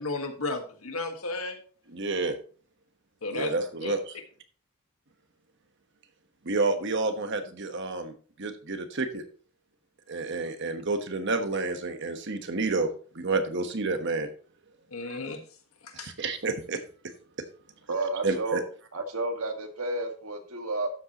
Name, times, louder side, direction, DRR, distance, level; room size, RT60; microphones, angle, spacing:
voice 1, 0.0-1.6 3.2-3.5 3.8-3.9 14.9-15.4 15.8-16.1, left 3 dB, 85° left, 5 dB, 1.6 m, -33 dB
voice 2, 1.9-2.4 3.3-4.2 6.4-8.1 8.4-9.2 10.1-14.3 15.1-15.2 15.9-16.8 18.2-18.6, right 3 dB, 55° right, 7 dB, 1.2 m, -29 dB
voice 3, 17.9-18.6 18.9-20.9, right 2 dB, 85° right, 4 dB, 1.8 m, -31 dB
12.5 x 7.7 x 3.0 m, 0.42 s
head